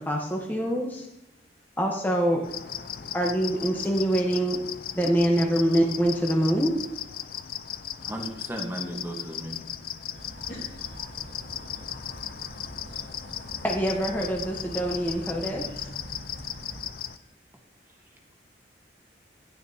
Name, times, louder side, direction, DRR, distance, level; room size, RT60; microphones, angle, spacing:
voice 1, 0.1-1.1 1.8-2.4 3.1-4.6 4.9-6.7 13.6-15.8, right 1 dB, 10° left, 0 dB, 0.8 m, -25 dB
sound 1, 2.4-17.2, left 10 dB, 50° left, 0.4 m, -37 dB
voice 2, 2.6-3.4 7.3-7.5 10.5-10.8 11.1-11.2 12.4-13.4 17.1-17.3, left 1 dB, 80° left, -4 dB, 3.1 m, -50 dB
voice 3, 8.0-9.6, right 1 dB, 10° right, 1 dB, 1.1 m, -35 dB
sound 2, 10.1-16.9, equal, 70° right, 1.3 m, -44 dB
10.5 x 9.5 x 2.7 m, 0.84 s
head